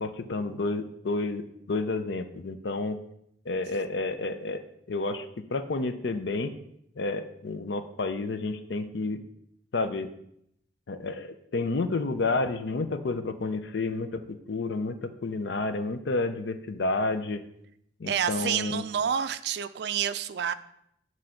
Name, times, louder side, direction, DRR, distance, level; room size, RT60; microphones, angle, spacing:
voice 1, 0.0-3.0 3.5-4.6 4.9-6.5 7.0-9.2 9.7-10.1 10.9-17.4 18.0-18.8, left 3 dB, 70° left, 10 dB, 0.5 m, -30 dB
voice 2, 18.0-20.5, right 8 dB, 60° right, 12 dB, 0.3 m, -28 dB
7.6 x 3.1 x 5.7 m, 0.75 s
head